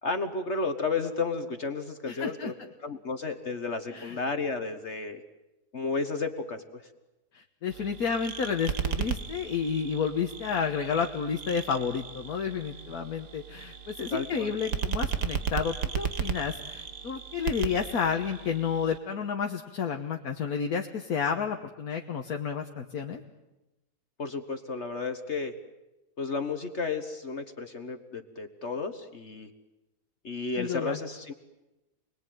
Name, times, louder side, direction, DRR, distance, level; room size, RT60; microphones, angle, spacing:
voice 1, 0.0-2.5 2.8-5.2 5.7-6.8 14.1-14.5 24.2-25.5 26.2-29.5 30.2-31.3, left 4 dB, 45° left, 8 dB, 1.6 m, -32 dB
voice 2, 2.1-2.5 3.9-4.2 7.3-23.2 30.6-31.0, left 6 dB, 70° left, 3 dB, 1.8 m, -31 dB
sound 1, 7.7-19.0, right 7 dB, 85° right, 2.0 m, -35 dB
29.0 x 21.0 x 9.3 m, 1.0 s
omnidirectional pair, 1.7 m